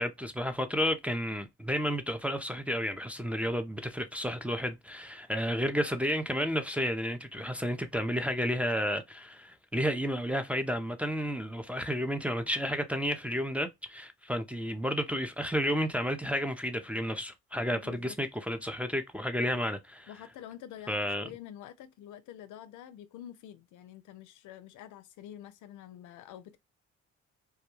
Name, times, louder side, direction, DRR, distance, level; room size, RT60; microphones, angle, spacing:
voice 1, 0.0-20.1 20.9-21.3, equal, 5° right, 0.4 m, -31 dB
voice 2, 17.7-18.1 20.1-26.6, left 11 dB, 80° left, 0.5 m, -47 dB
2.3 x 2.2 x 2.9 m
cardioid pair, 80°, 30 cm